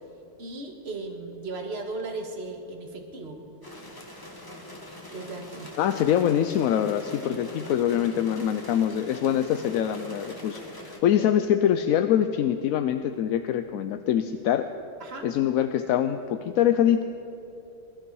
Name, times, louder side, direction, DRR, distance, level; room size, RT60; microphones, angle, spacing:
voice 1, 0.4-3.4 5.1-5.7 7.2-7.4 11.2-11.3 15.0-15.3, right 3 dB, 50° right, 3 dB, 1.8 m, -36 dB
sound 1, 3.6-11.0, left 1 dB, 15° left, 1.5 m, -43 dB
voice 2, 5.8-14.7 15.2-17.0, left 10 dB, 90° left, 8 dB, 1.0 m, -24 dB
22.0 x 12.5 x 4.7 m, 2.9 s
omnidirectional pair, 1.4 m